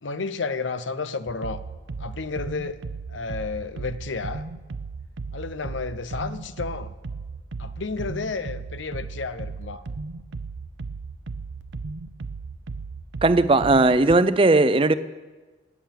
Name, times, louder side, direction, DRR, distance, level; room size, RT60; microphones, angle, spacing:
voice 1, 0.0-1.6 2.0-2.8 3.1-4.4 5.3-6.9 7.6-9.8, left 4 dB, 80° left, 13 dB, 0.8 m, -31 dB
sound 1, 1.3-14.2, right 4 dB, 80° right, 0.6 m, -36 dB
voice 2, 13.2-14.9, right 2 dB, 30° right, 13 dB, 0.5 m, -17 dB
18.0 x 7.2 x 9.1 m, 1.3 s
head